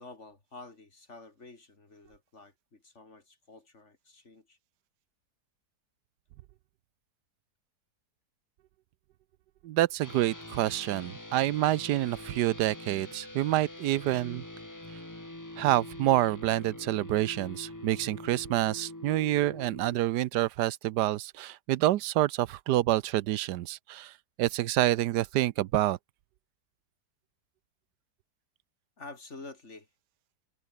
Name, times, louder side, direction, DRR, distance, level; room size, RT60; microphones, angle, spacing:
voice 1, 0.0-4.6 29.0-29.9, left 3 dB, 45° left, 3.3 m, -49 dB
voice 2, 9.6-14.4 15.6-24.1 24.4-26.0, right 14 dB, 80° right, 1.2 m, -27 dB
sound 1, 10.0-20.0, left 1 dB, 10° left, 2.0 m, -44 dB
omnidirectional pair, 1.8 m